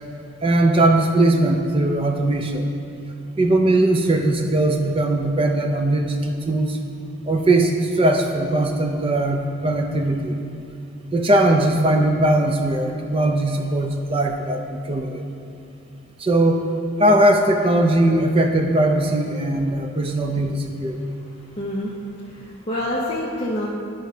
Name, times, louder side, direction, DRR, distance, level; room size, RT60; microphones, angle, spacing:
voice 1, 0.4-2.7 3.4-6.8 7.2-10.4 11.1-15.2 16.2-16.6 17.0-21.0, right 1 dB, 25° right, 4 dB, 0.4 m, -19 dB
voice 2, 21.5-23.7, left 1 dB, 25° left, -7 dB, 0.7 m, -27 dB
11.0 x 5.0 x 2.7 m, 2.6 s
head